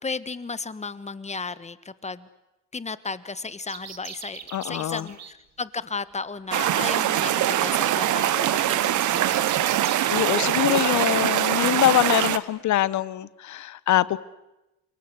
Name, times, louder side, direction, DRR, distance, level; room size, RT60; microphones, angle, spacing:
voice 1, 0.0-2.3 2.7-9.7, left 4 dB, 20° left, 1.4 m, -34 dB
sound 1, 3.7-5.3 8.6-11.1, right 8 dB, 60° right, 2.3 m, -40 dB
voice 2, 4.5-5.1 10.1-14.2, left 13 dB, 70° left, 1.1 m, -23 dB
sound 2, 6.5-12.4, right 12 dB, 80° right, 1.3 m, -23 dB
28.5 x 22.5 x 8.2 m
cardioid pair, 90°, 30 cm